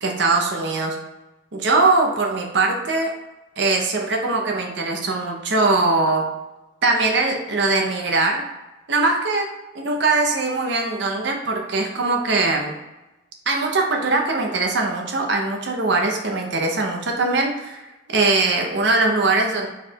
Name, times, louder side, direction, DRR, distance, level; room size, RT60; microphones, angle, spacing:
voice 1, 0.0-1.0 1.5-3.1 3.6-6.2 6.8-8.4 8.9-9.4 9.8-12.7 13.5-19.7, right 3 dB, 65° right, 2 dB, 0.7 m, -21 dB
4.6 x 2.3 x 4.4 m, 1.0 s
head